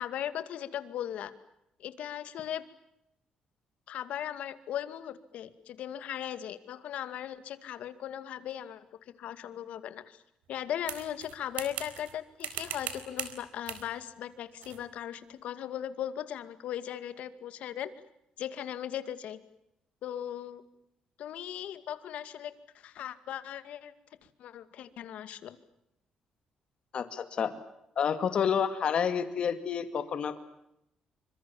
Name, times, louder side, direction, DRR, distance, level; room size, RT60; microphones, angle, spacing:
voice 1, 0.0-1.3 1.8-2.6 3.9-8.8 9.2-10.2 10.5-17.9 18.4-19.4 20.0-20.6 21.2-23.9 24.4-25.6, left 10 dB, 70° left, 12 dB, 2.3 m, -38 dB
sound 1, 10.9-12.1 12.4-13.4 13.7-13.9 14.6-14.8, right 9 dB, 85° right, 4.2 m, -39 dB
voice 2, 26.9-27.5 28.0-30.4, left 7 dB, 45° left, 11 dB, 2.3 m, -29 dB
28.0 x 25.5 x 7.2 m, 0.82 s
cardioid pair, 150°, 2 cm